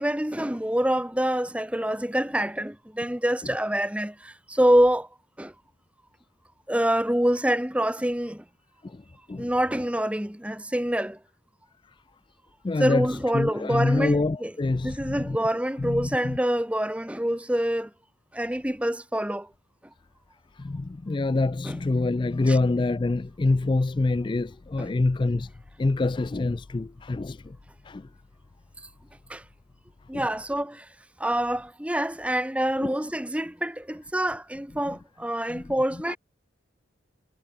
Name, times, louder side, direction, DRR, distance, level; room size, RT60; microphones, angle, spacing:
voice 1, 0.0-5.1 5.4-5.5 6.7-8.4 9.4-11.2 12.8-14.5 14.8-17.9 18.3-19.5 21.6-21.8 22.4-22.6 24.8-24.9 29.3-29.4 30.1-30.9 31.2-36.2, right 1 dB, 5° right, 1.2 m, -26 dB
voice 2, 12.6-15.4 15.8-16.4 20.5-25.5 25.8-27.6 27.8-28.1 30.1-30.3 32.8-32.9 35.5-35.6 36.1-36.2, left 2 dB, 25° left, 0.3 m, -26 dB
head